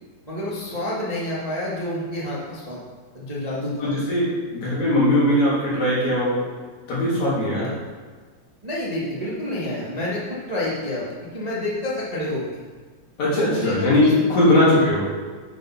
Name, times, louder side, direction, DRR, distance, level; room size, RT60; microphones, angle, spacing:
voice 1, 0.3-2.8 3.1-3.9 7.5-7.7 8.6-12.6 13.3-14.2, left 1 dB, 20° right, -7 dB, 1.1 m, -28 dB
voice 2, 3.8-6.4 6.9-7.7 13.2-15.1, left 1 dB, 70° left, -8 dB, 4.3 m, -20 dB
8.8 x 5.3 x 5.7 m, 1.5 s
omnidirectional pair, 3.4 m